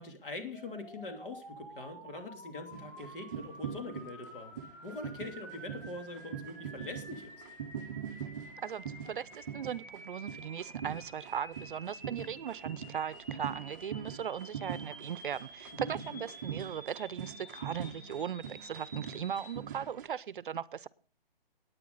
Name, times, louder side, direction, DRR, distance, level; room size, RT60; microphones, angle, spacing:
voice 1, 0.0-4.5 4.8-7.3 15.8-16.2, left 2 dB, 60° left, 5 dB, 3.0 m, -43 dB
sound 1, 0.5-19.6, equal, 5° left, 2.7 m, -51 dB
sound 2, 2.7-20.1, right 8 dB, 20° right, 0.6 m, -43 dB
voice 2, 8.6-20.9, right 8 dB, 60° right, 19 dB, 0.6 m, -38 dB
18.0 x 9.3 x 3.9 m, 0.41 s
hypercardioid pair, 165°, 30 cm